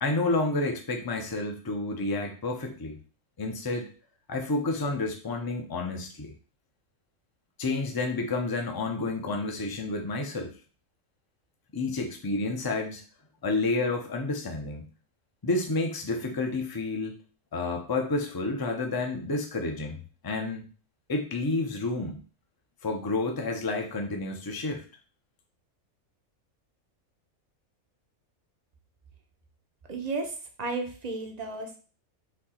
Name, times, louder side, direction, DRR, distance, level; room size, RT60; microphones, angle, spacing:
voice 1, 0.0-3.0 3.4-3.9 4.3-6.3 7.6-10.5 11.7-13.0 13.4-14.9 15.4-17.2 17.5-20.7 21.1-22.2 22.8-24.8, left 2 dB, 25° left, 3 dB, 0.5 m, -30 dB
voice 2, 29.9-31.8, right 3 dB, 40° right, 3 dB, 0.6 m, -33 dB
4.3 x 2.8 x 4.2 m, 0.37 s
omnidirectional pair, 1.5 m